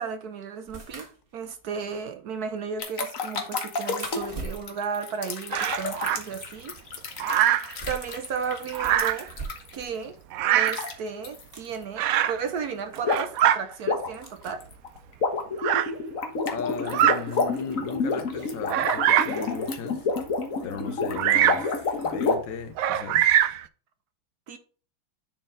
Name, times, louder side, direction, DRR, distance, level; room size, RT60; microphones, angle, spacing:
voice 1, 0.0-6.8 7.9-9.3 9.7-10.2 10.5-14.6 20.7-21.0 24.5-24.6, right 6 dB, 60° right, 1.2 m, -34 dB
sound 1, 0.6-6.1 6.4-10.0 10.3-10.4 11.3-11.8 12.5-12.6 12.8-13.4 14.2-14.7 16.1-16.2 17.3-17.4, right 3 dB, 30° right, 1.6 m, -44 dB
sound 2, 2.8-9.8 10.6-10.9 11.2-11.4 13.0-13.4 13.7-22.4, left 4 dB, 45° left, 1.6 m, -29 dB
Bird vocalization bird call bird song, 5.5-6.2 7.2-7.7 8.7-9.3 10.3-10.9 12.0-12.4 12.9-13.6 14.5-14.6 15.6-15.9 16.8-17.2 17.8-17.9 18.7-19.4 21.2-21.7 22.8-23.6, right 12 dB, 80° right, 0.7 m, -23 dB
voice 2, 16.5-20.1 20.6-23.3, left 7 dB, 75° left, 1.6 m, -36 dB
10.5 x 4.4 x 3.6 m
omnidirectional pair, 2.0 m